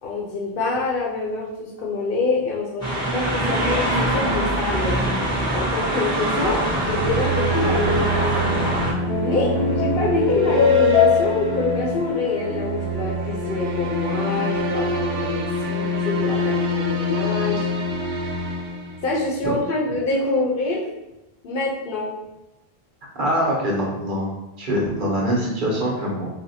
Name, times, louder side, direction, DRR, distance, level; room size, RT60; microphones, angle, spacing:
voice 1, 0.0-5.0 5.5-8.9 9.1-17.7 19.0-20.8 21.4-22.1, left 3 dB, 65° left, -2 dB, 0.7 m, -26 dB
sound 1, 2.8-8.9, right 1 dB, 5° left, 0.8 m, -23 dB
sound 2, 6.7-19.5, right 1 dB, 90° right, 0.8 m, -25 dB
sound 3, 8.8-13.4, left 8 dB, 30° left, 0.5 m, -22 dB
voice 2, 23.1-24.3 24.6-26.3, equal, 55° right, -2 dB, 0.9 m, -23 dB
4.1 x 2.1 x 2.7 m, 0.97 s
omnidirectional pair, 1.0 m